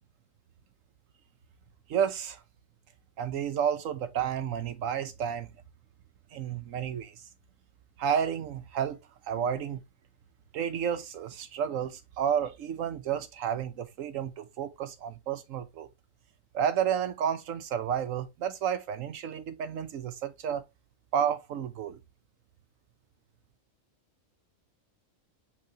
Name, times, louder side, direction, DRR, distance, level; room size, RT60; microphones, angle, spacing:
voice 1, 1.9-2.4 3.2-5.5 6.3-7.2 8.0-9.0 9.3-9.8 10.5-15.9 16.5-20.6 21.1-22.0, right 8 dB, 75° right, 1.1 m, -31 dB
5.9 x 3.1 x 2.9 m
omnidirectional pair, 1.4 m